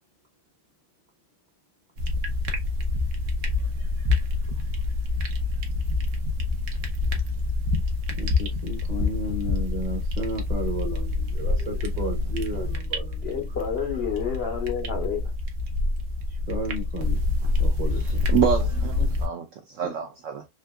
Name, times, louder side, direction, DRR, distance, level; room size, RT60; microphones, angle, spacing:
sound 1, 2.0-19.3, left 3 dB, 60° right, 1.1 m, -27 dB
voice 1, 8.2-13.3 16.5-17.2 17.6-18.2, right 1 dB, 35° right, 0.7 m, -33 dB
voice 2, 13.2-15.3, left 7 dB, 65° left, 0.6 m, -29 dB
voice 3, 17.9-20.5, right 8 dB, 80° right, 0.6 m, -27 dB
3.6 x 2.6 x 2.3 m
omnidirectional pair, 1.8 m